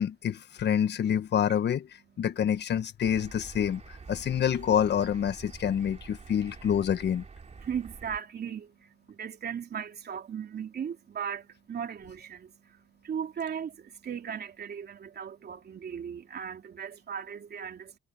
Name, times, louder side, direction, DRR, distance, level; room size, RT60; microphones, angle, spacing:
voice 1, 0.0-1.9 2.2-7.2, left 9 dB, 60° left, 1.5 m, -27 dB
sound 1, 3.0-8.2, right 5 dB, 35° right, 3.2 m, -47 dB
voice 2, 7.4-18.0, right 8 dB, 55° right, 3.2 m, -37 dB
cardioid pair, 90°, 20 cm